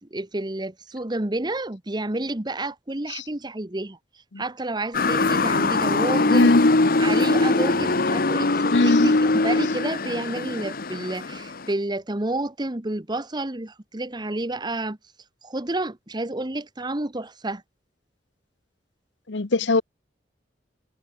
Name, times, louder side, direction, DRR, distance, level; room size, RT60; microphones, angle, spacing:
voice 1, 0.0-4.0 4.4-6.5 7.0-9.1 9.4-15.0 15.4-17.6, right 2 dB, 25° right, 1.2 m, -30 dB
Motor vehicle (road) / Siren, 4.9-11.7, left 2 dB, 55° left, 1.1 m, -22 dB
voice 2, 6.3-6.8 8.7-9.1 19.3-19.8, left 2 dB, 85° left, 1.0 m, -20 dB
head